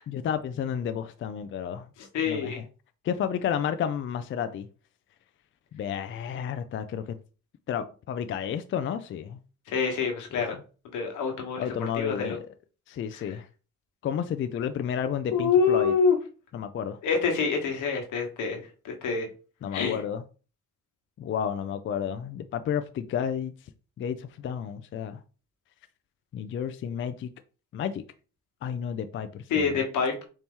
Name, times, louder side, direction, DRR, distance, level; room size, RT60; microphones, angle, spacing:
voice 1, 0.1-1.9 2.3-2.7 3.0-4.7 5.7-7.2 7.7-9.4 10.3-10.4 11.6-12.4 12.9-13.5 14.0-15.9 16.5-17.0 19.6-20.2 21.2-23.5 24.0-25.2 26.3-27.3 27.7-28.0 28.6-29.8, left 8 dB, 40° left, 0.4 m, -31 dB
voice 2, 2.1-2.6 9.7-10.6 10.9-11.7 11.9-12.4 15.3-16.2 17.0-19.3 19.7-20.0 29.5-30.3, left 5 dB, 85° left, 1.2 m, -26 dB
4.2 x 2.9 x 3.6 m
cardioid pair, 90°, 30 cm